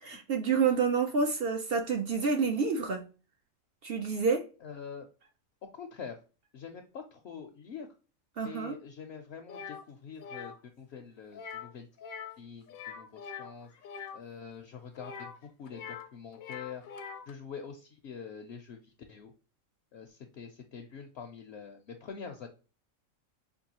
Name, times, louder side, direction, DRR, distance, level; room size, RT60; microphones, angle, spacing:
voice 1, 0.0-3.0 3.8-4.4 8.4-8.8, right 5 dB, 60° right, 0.7 m, -28 dB
voice 2, 4.6-5.1 5.7-6.2 6.5-7.9 8.4-11.9 12.4-13.7 14.1-16.8 17.3-19.3 19.9-22.5, left 6 dB, 65° left, 0.7 m, -45 dB
sound 1, 9.5-9.8 10.2-10.6 11.3-11.7 12.0-12.4 12.7-14.2 15.0-16.1 16.3-17.3, left 7 dB, 85° left, 1.0 m, -43 dB
5.3 x 2.3 x 2.8 m
omnidirectional pair, 1.4 m